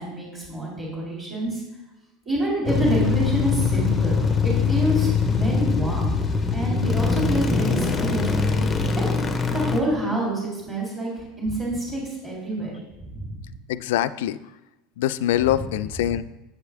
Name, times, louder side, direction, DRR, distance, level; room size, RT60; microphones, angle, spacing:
voice 1, 0.0-1.6 2.2-4.3 4.7-6.1 6.5-8.5 9.0-9.1 9.5-13.4 15.4-15.6, right 1 dB, 15° right, -4 dB, 3.0 m, -27 dB
sound 1, 2.7-9.8, left 5 dB, 15° left, 0.7 m, -22 dB
voice 2, 13.7-14.4 15.0-16.2, left 12 dB, 90° left, 15 dB, 0.3 m, -23 dB
8.2 x 7.9 x 3.4 m, 1.0 s
supercardioid pair, 165°, 0 cm